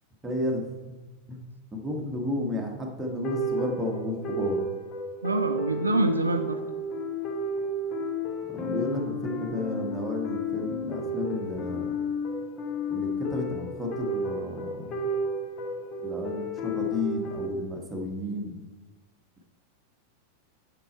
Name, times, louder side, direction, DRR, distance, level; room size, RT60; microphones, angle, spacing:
voice 1, 0.2-0.6 1.3-1.4 1.7-4.6 8.5-12.0 12.9-15.1 16.0-18.6, left 1 dB, 10° right, 0 dB, 1.4 m, -32 dB
sound 1, 3.0-17.5, left 1 dB, 30° left, 1.0 m, -32 dB
voice 2, 5.2-6.6, right 2 dB, 80° right, 8 dB, 0.4 m, -25 dB
8.4 x 5.4 x 4.3 m, 1.3 s
figure-of-eight pair, 90°, 0 cm